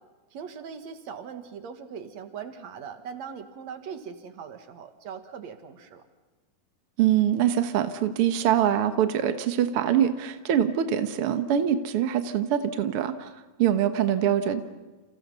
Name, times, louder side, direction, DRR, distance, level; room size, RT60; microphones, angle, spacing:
voice 1, 0.3-6.0, right 7 dB, 55° right, 7 dB, 2.4 m, -40 dB
voice 2, 7.0-13.3 13.6-14.6, right 10 dB, 90° right, 8 dB, 1.2 m, -24 dB
29.5 x 29.0 x 5.6 m, 1.2 s
omnidirectional pair, 4.5 m